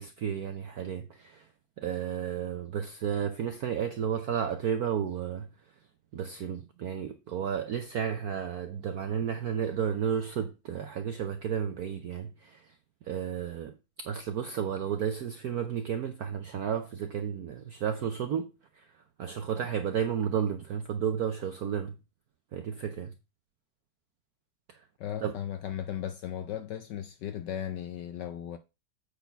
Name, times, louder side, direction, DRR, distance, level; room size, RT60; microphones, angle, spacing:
voice 1, 0.0-1.5 1.8-5.5 6.1-12.7 13.0-13.8 14.0-18.9 19.2-22.0 22.5-23.1 24.7-24.8 25.2-25.3, right 8 dB, 70° right, 0.8 m, -32 dB
voice 2, 25.0-28.6, left 10 dB, 70° left, 1.0 m, -36 dB
8.2 x 4.2 x 5.7 m
omnidirectional pair, 2.4 m